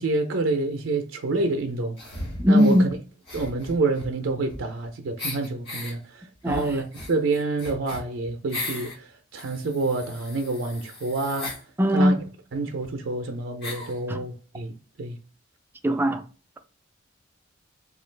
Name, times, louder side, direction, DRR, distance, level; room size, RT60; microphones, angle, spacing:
voice 1, 0.0-2.0 2.5-2.8 3.3-11.6 11.9-12.1 12.5-15.2, right 3 dB, 65° right, 0.5 m, -28 dB
sound 1, 2.0-2.8 3.2-4.8 5.2-5.9 6.4-9.0 9.3-11.6 12.5-12.6 12.8-12.9 13.6-14.0, left 2 dB, 55° left, 1.4 m, -37 dB
voice 2, 2.4-2.9 6.4-6.7 11.8-12.2 14.1-14.2 15.8-16.2, equal, 10° right, 0.3 m, -19 dB
3.8 x 2.4 x 3.2 m
head